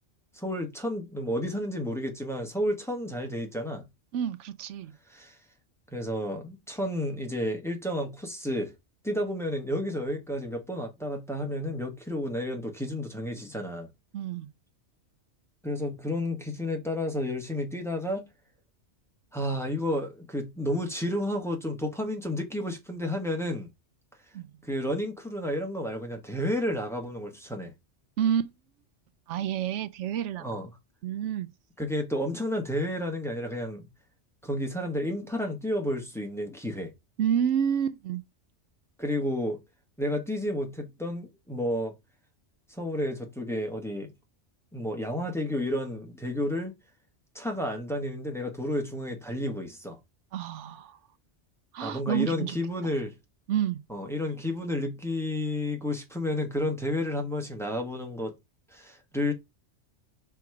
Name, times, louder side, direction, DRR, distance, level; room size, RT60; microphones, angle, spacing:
voice 1, 0.3-3.8 5.1-5.4 5.9-8.7 9.0-13.9 15.6-18.2 19.3-23.7 24.6-27.7 30.4-30.7 31.8-33.9 34.4-36.9 39.0-39.6 40.0-41.9 42.7-44.1 44.7-46.7 47.3-50.0 51.8-53.1 53.9-58.3 58.7-59.3, left 1 dB, ahead, 1.3 m, -31 dB
voice 2, 4.1-4.9 14.1-14.5 24.3-24.5 28.2-28.5 29.3-30.4 31.0-31.5 37.2-38.2 50.3-51.0 51.7-52.6 53.5-53.8, right 9 dB, 80° right, 0.9 m, -29 dB
6.1 x 3.5 x 4.8 m
omnidirectional pair, 1.2 m